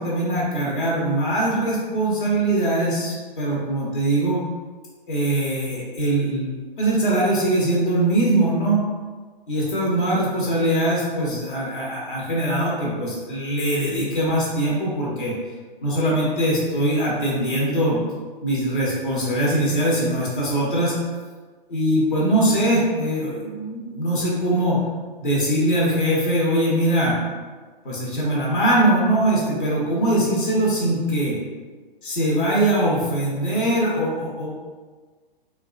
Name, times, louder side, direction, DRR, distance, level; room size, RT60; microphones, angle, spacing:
voice 1, 0.0-4.4 5.1-6.5 6.8-8.8 9.5-15.3 15.8-18.0 18.4-20.9 21.7-24.8 25.2-27.1 27.8-31.3 32.0-34.5, right 1 dB, 60° left, -5 dB, 0.9 m, -22 dB
2.8 x 2.3 x 2.3 m, 1.4 s
figure-of-eight pair, 120°, 29 cm